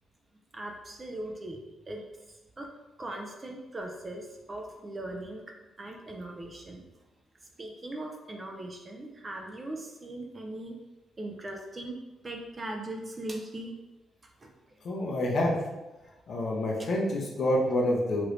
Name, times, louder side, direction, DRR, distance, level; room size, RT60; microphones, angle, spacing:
voice 1, 0.5-1.6 1.9-2.0 2.3-2.7 3.0-5.4 5.8-6.8 7.6-10.8 11.2-12.0 12.2-13.7 14.4-14.5, right 1 dB, 20° right, 2 dB, 0.3 m, -39 dB
voice 2, 14.8-15.5 16.3-18.3, left 1 dB, 45° left, -1 dB, 0.6 m, -27 dB
3.0 x 2.5 x 3.0 m, 1.1 s
cardioid pair, 160°, 0 cm